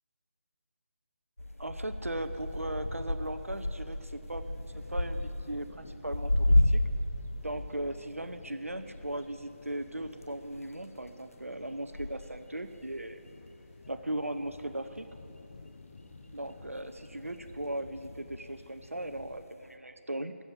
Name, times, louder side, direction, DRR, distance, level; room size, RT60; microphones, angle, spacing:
sound 1, 1.4-7.2 7.5-14.6 14.8-15.6 16.3-18.1 18.5-18.9 19.6-19.7, left 1 dB, 85° left, 0.9 m, -33 dB
voice 1, 1.6-4.4 4.9-6.8 7.4-13.2 13.9-15.1 16.3-20.4, right 1 dB, 80° right, 9 dB, 0.8 m, -38 dB
sound 2, 2.3-19.5, left 3 dB, 35° left, 0.7 m, -53 dB
11.5 x 7.1 x 9.3 m, 2.8 s
figure-of-eight pair, 155°, 8 cm